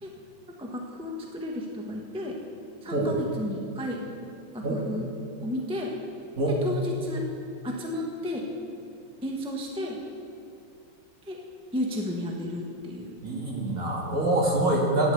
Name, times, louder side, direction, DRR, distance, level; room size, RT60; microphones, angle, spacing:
voice 1, 0.6-2.4 2.8-4.0 4.5-5.1 5.4-5.9 6.6-7.3 7.6-8.5 9.2-10.0 11.2-11.4 11.7-13.1, left 1 dB, 5° right, 0 dB, 0.4 m, -32 dB
voice 2, 13.2-15.1, right 1 dB, 40° right, -2 dB, 2.1 m, -25 dB
10.0 x 8.4 x 7.9 m, 2.4 s
omnidirectional pair, 2.3 m